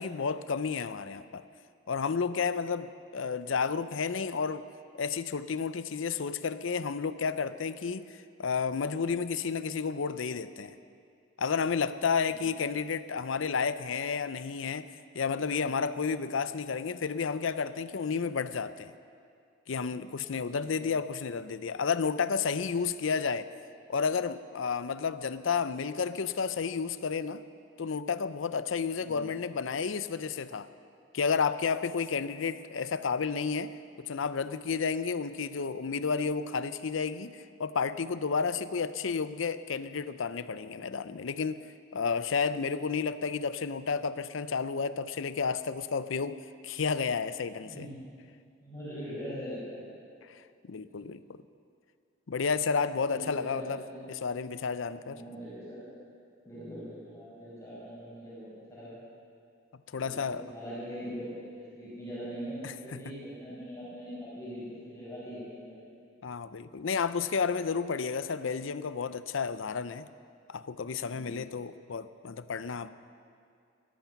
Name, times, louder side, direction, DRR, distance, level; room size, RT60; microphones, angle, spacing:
voice 1, 0.0-1.4 1.9-4.6 4.9-10.8 11.4-14.9 15.1-18.9 19.7-23.5 23.9-27.4 27.8-30.7 31.1-33.7 34.0-41.7 41.9-46.4 46.6-47.9 50.3-51.4 52.3-53.8 54.1-55.2 59.9-60.5 62.6-63.0 66.2-70.1 70.5-72.9, left 5 dB, 85° left, 13 dB, 0.6 m, -31 dB
voice 2, 20.4-20.9 29.0-29.3 47.7-48.0 48.6-49.8 50.9-51.0 53.0-54.0 55.0-55.9 56.5-59.0 59.9-65.8 70.8-71.5, equal, 15° left, -9 dB, 5.5 m, -42 dB
18.0 x 13.0 x 5.9 m, 2.3 s
head